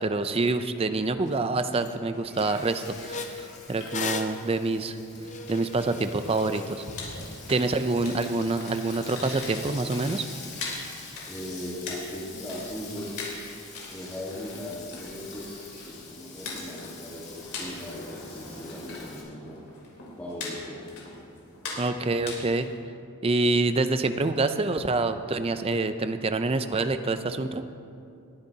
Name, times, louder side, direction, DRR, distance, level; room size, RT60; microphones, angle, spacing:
voice 1, 0.0-5.0 5.5-6.8 7.5-10.3 21.8-22.7 23.2-27.7, right 3 dB, 25° right, 9 dB, 0.4 m, -26 dB
sound 1, 1.3-1.4 1.7-2.0 2.3-7.1, left 4 dB, 35° left, 0.5 m, -38 dB
Frying (food), 1.9-19.2, left 4 dB, 50° left, 2.8 m, -45 dB
sound 2, 4.7-22.8, left 3 dB, 80° left, 3.4 m, -42 dB
voice 2, 11.3-13.1 13.9-19.6 20.2-20.8, left 1 dB, 10° left, -7 dB, 1.5 m, -38 dB
20.5 x 10.5 x 2.8 m, 2.6 s
head